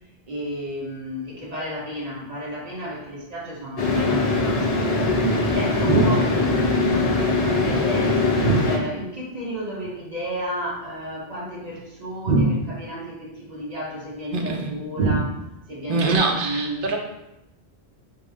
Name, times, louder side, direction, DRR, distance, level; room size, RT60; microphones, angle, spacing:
voice 1, 0.3-4.8 5.2-15.3 15.7-16.9, equal, 40° right, -5 dB, 1.2 m, -32 dB
sound 1, 3.8-8.8, left 2 dB, 45° left, 0.6 m, -21 dB
voice 2, 14.3-14.7 15.0-15.2 15.9-17.0, right 3 dB, 60° right, 1 dB, 0.8 m, -21 dB
5.1 x 2.0 x 3.4 m, 0.90 s
omnidirectional pair, 1.1 m